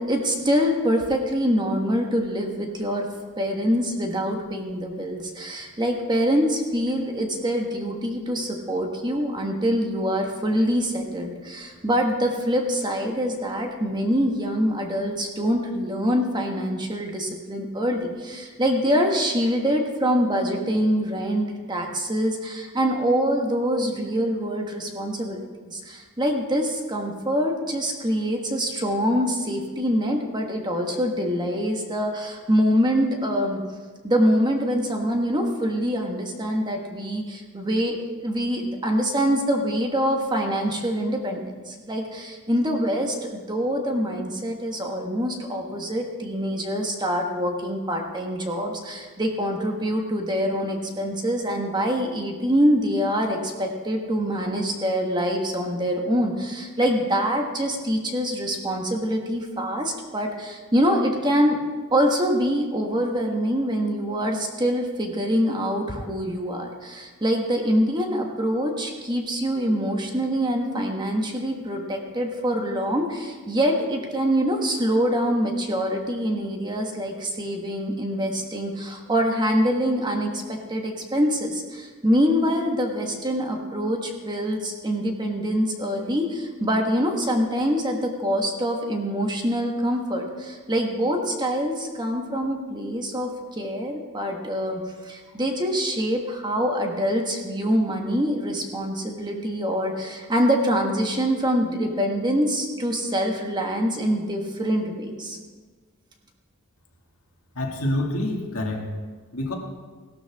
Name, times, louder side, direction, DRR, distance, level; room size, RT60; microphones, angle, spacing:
voice 1, 0.0-3.1 3.4-33.6 34.0-61.6 61.9-105.4, equal, 20° right, 2 dB, 1.4 m, -25 dB
voice 2, 107.5-108.9 109.3-109.5, left 1 dB, 80° left, 1 dB, 2.1 m, -27 dB
17.0 x 12.0 x 3.6 m, 1.5 s
head